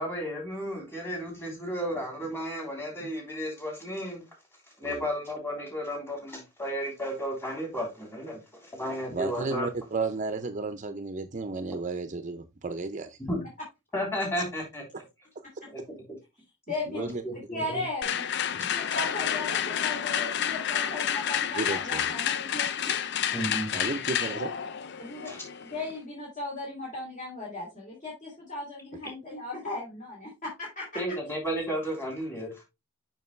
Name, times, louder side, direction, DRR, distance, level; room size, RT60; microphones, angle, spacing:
voice 1, 0.0-4.2 4.8-9.7 13.2-13.4 13.9-14.8 15.7-15.8 16.1-16.2 16.9-17.8 18.5-18.7 23.3-23.7 25.2-25.4 30.9-32.6, equal, 10° left, 3.2 m, -33 dB
voice 2, 9.1-13.2 16.9-17.2 21.6-22.1 23.7-24.5, right 3 dB, 35° right, 0.6 m, -33 dB
voice 3, 16.7-17.0 17.3-18.1 18.7-23.0 25.0-25.3 25.7-31.0, left 2 dB, 40° left, 2.8 m, -37 dB
sound 1, 18.0-26.0, left 9 dB, 55° left, 0.5 m, -30 dB
6.9 x 6.0 x 3.1 m
head